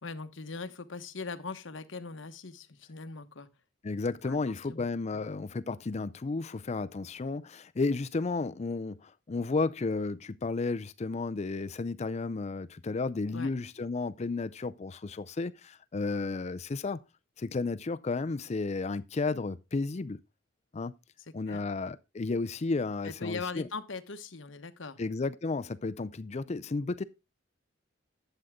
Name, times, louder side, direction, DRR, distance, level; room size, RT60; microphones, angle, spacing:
voice 1, 0.0-3.5 4.2-4.9 5.1-5.2 13.3-13.5 21.2-21.6 23.0-25.0, left 4 dB, 70° left, 1.1 m, -40 dB
voice 2, 3.8-17.0 17.4-20.2 20.7-20.9 21.3-23.7 25.0-27.0, left 3 dB, 35° left, 0.4 m, -33 dB
11.5 x 7.9 x 3.6 m
head